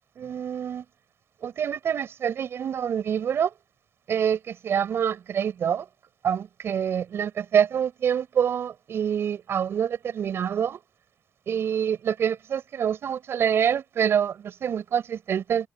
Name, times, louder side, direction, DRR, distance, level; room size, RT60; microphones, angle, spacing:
voice 1, 0.2-0.8 1.4-3.5 4.1-5.9 6.2-10.8 11.5-15.7, right 8 dB, 65° right, 7.3 m, -26 dB
cardioid pair, 90°, 5 cm